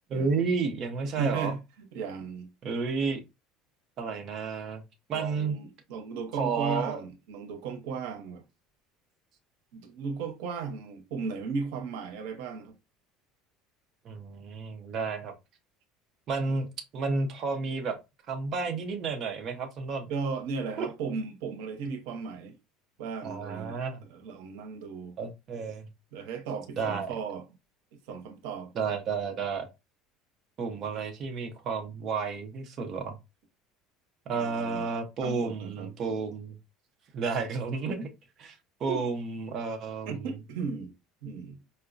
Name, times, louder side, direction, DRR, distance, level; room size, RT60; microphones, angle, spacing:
voice 1, 0.1-1.5 2.6-3.2 4.0-4.8 5.1-5.5 6.4-7.0 14.0-15.3 16.3-16.7 16.9-18.0 18.3-20.1 20.8-20.9 23.2-24.0 25.2-25.9 26.8-27.1 28.8-29.7 30.6-33.2 34.3-36.6 37.1-38.1 38.4-40.3, right 4 dB, 35° right, 0.6 m, -31 dB
voice 2, 1.0-1.6 1.9-2.5 5.1-8.4 9.7-12.7 20.1-22.5 23.0-25.2 26.1-27.4 28.1-28.7 34.3-34.9 35.2-35.9 38.9-39.1 40.0-40.9 41.2-41.6, right 5 dB, 85° right, 0.8 m, -35 dB
4.6 x 2.1 x 2.5 m
cardioid pair, 160°, 0 cm